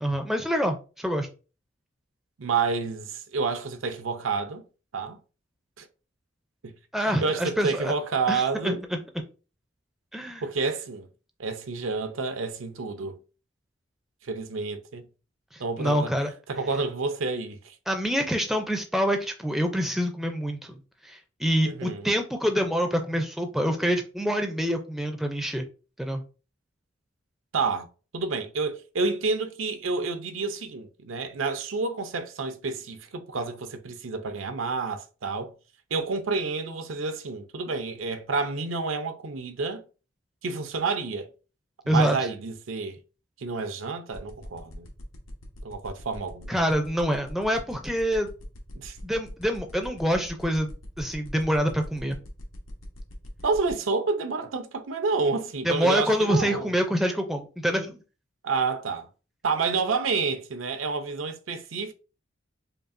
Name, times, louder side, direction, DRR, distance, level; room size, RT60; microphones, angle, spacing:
voice 1, 0.0-1.3 6.9-7.9 8.3-9.0 10.1-10.4 15.5-16.3 17.9-25.7 26.0-26.2 41.9-42.2 46.5-48.3 49.0-52.2 55.6-58.0, equal, ahead, 0.4 m, -26 dB
voice 2, 2.4-4.7 4.9-5.2 5.8-5.9 6.6-6.7 7.0-8.8 10.4-11.1 11.4-13.2 14.2-15.1 15.6-16.1 16.5-17.7 21.6-22.1 27.5-27.9 28.1-35.5 35.9-39.8 40.4-41.3 41.8-43.0 43.4-44.9 45.6-46.5 48.7-49.0 53.4-56.7 58.4-59.1 59.4-61.9, right 4 dB, 85° right, 0.6 m, -29 dB
sound 1, 44.1-53.7, left 1 dB, 85° left, 1.1 m, -46 dB
5.2 x 2.4 x 2.5 m
head